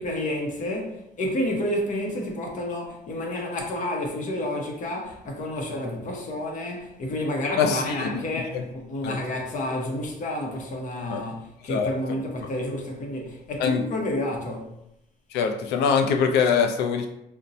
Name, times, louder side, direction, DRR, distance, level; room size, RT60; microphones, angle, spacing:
voice 1, 0.0-14.7, left 1 dB, 50° left, 0.8 m, -30 dB
voice 2, 7.6-8.1 8.5-8.6 9.0-9.2 11.1-11.2 11.7-11.9 13.6-13.8 15.3-17.1, left 6 dB, 80° left, 0.5 m, -23 dB
2.6 x 2.1 x 4.0 m
cardioid pair, 110°, 17 cm